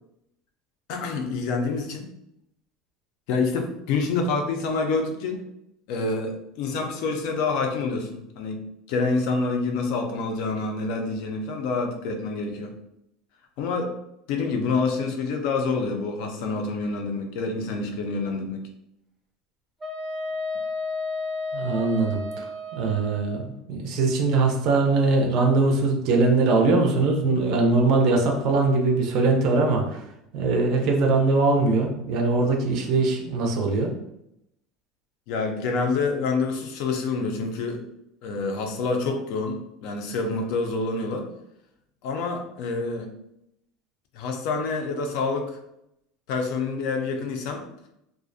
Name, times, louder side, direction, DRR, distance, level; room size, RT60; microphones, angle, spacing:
voice 1, 0.9-2.1 3.3-5.4 5.9-12.7 13.6-13.9 14.3-18.7 35.3-37.8 38.2-41.3 42.0-43.1 44.1-45.6 46.3-47.7, left 4 dB, 55° left, 4 dB, 0.4 m, -27 dB
Wind instrument woodwind instrument, 19.8-23.4, left 2 dB, 5° right, 0.6 m, -32 dB
voice 2, 21.5-30.0 30.3-33.9, right 3 dB, 45° right, 1 dB, 0.4 m, -22 dB
2.3 x 2.0 x 2.5 m, 0.80 s
cardioid pair, 175°, 0 cm